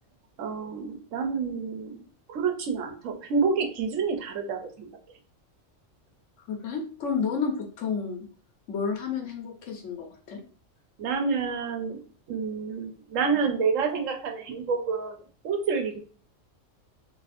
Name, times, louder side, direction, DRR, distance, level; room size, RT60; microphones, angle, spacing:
voice 1, 0.4-2.0 2.3-4.9 11.0-12.0 12.3-15.2 15.4-16.0, right 5 dB, 90° right, 5 dB, 1.1 m, -28 dB
voice 2, 6.5-8.3 8.7-10.4, left 5 dB, 75° left, 3 dB, 1.1 m, -31 dB
2.9 x 2.5 x 4.1 m, 0.41 s
omnidirectional pair, 1.3 m